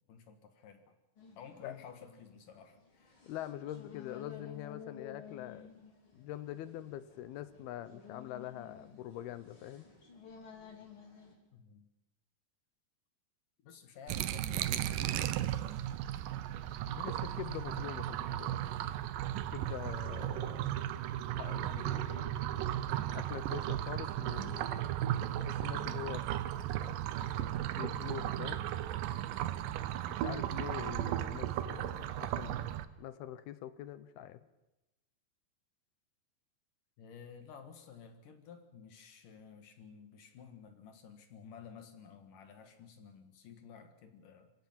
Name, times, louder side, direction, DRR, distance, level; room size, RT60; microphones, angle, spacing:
voice 1, 0.1-1.0 1.4-3.2 11.5-11.9 13.6-14.8 37.0-44.5, left 7 dB, 60° left, 7 dB, 2.8 m, -53 dB
sound 1, 1.2-11.4, left 7 dB, 30° left, 3.5 m, -53 dB
voice 2, 3.2-5.7 6.2-9.9 16.9-18.9 19.5-20.7 21.4-24.9 25.4-26.3 26.8-27.0 27.3-28.6 30.1-32.7 33.0-34.4, left 12 dB, 75° left, 14 dB, 2.6 m, -44 dB
sound 2, 14.1-32.8, right 12 dB, 90° right, 1.9 m, -35 dB
26.0 x 17.0 x 7.5 m, 0.99 s
omnidirectional pair, 5.1 m